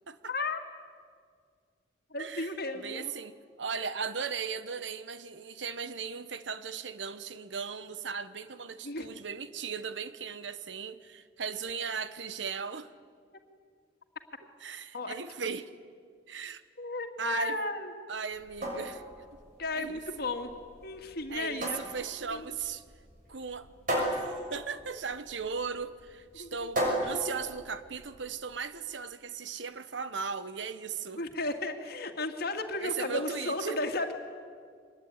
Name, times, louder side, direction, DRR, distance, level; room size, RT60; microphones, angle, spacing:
voice 1, 0.3-0.6 2.1-3.1 8.8-9.1 14.9-15.1 16.8-17.9 19.6-20.5 20.8-21.8 22.3-22.4 26.4-26.7 31.2-34.1, left 2 dB, 55° left, 2.3 m, -34 dB
voice 2, 2.2-12.9 14.6-15.7 16.3-16.6 17.2-17.6 18.1-19.0 19.7-20.0 21.3-22.8 23.3-23.7 24.0-31.2 32.8-33.8, right 6 dB, 80° right, 1.1 m, -37 dB
sound 1, 18.3-28.3, right 1 dB, 45° right, 6.6 m, -36 dB
24.5 x 20.5 x 9.7 m
head